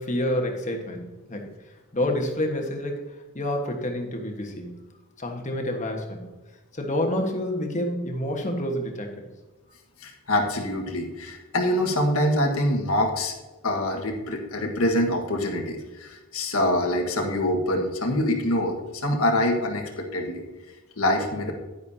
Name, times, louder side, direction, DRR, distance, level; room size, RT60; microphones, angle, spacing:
voice 1, 0.0-1.5 1.9-4.8 5.2-6.3 6.7-9.3, left 1 dB, 35° left, 3 dB, 1.4 m, -28 dB
voice 2, 10.0-13.3 13.6-20.4 21.0-21.5, left 1 dB, 80° left, 3 dB, 1.6 m, -25 dB
10.5 x 10.5 x 2.8 m, 1.2 s
head